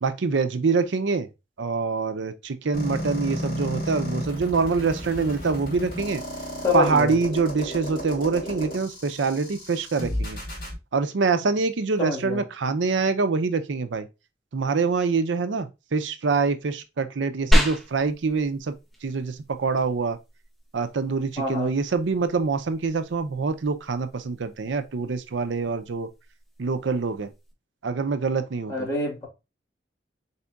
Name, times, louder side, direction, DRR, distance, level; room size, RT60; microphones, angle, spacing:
voice 1, 0.0-1.3 1.6-6.2 6.7-10.4 10.9-14.1 14.5-18.7 19.0-20.2 20.7-26.1 26.6-27.3 27.8-28.9, right 4 dB, 75° right, 0.5 m, -25 dB
sound 1, 2.7-10.7, equal, 50° left, 2.5 m, -33 dB
voice 2, 6.6-7.1 12.0-12.4 21.4-21.7 28.7-29.3, left 3 dB, 15° left, 2.1 m, -26 dB
sound 2, 17.5-27.5, equal, ahead, 1.3 m, -31 dB
4.3 x 4.1 x 2.3 m
head